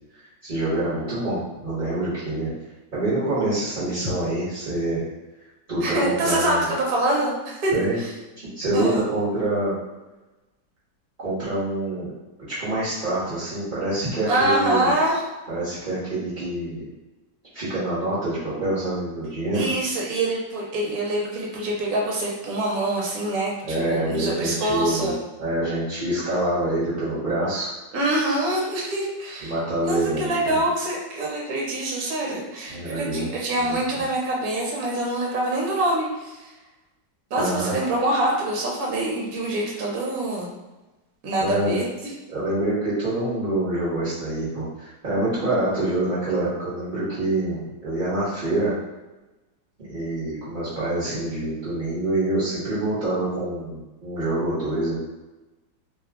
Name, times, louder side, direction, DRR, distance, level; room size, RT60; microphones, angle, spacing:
voice 1, 0.4-2.5 2.9-5.0 5.7-6.7 7.7-8.0 8.4-9.8 11.2-12.1 12.5-14.9 15.5-16.8 17.5-19.7 23.6-27.7 29.4-30.6 32.7-33.3 33.9-34.0 37.3-37.7 41.4-41.8 42.3-48.7 49.8-55.0, right 1 dB, 30° right, -13 dB, 1.0 m, -26 dB
voice 2, 5.8-7.7 8.7-9.0 14.3-15.2 19.5-23.5 23.8-25.2 27.9-29.5 29.8-36.5 37.3-40.5 41.2-41.9, right 1 dB, 60° right, -2 dB, 1.2 m, -25 dB
3.1 x 2.2 x 3.6 m, 1.1 s
omnidirectional pair, 1.9 m